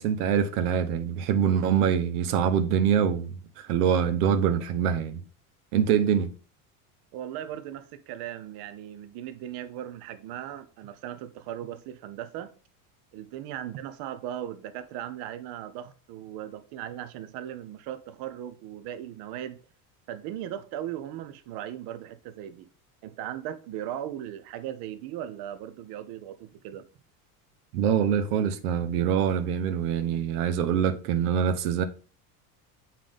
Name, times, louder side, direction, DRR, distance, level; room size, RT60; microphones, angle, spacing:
voice 1, 0.0-5.2 5.7-6.3 27.7-31.8, right 8 dB, 90° right, 0.8 m, -24 dB
voice 2, 7.1-12.5 13.1-19.6 20.1-22.7 23.0-26.8, right 11 dB, 55° right, 0.7 m, -38 dB
7.4 x 3.8 x 3.5 m
supercardioid pair, 115°, 45 cm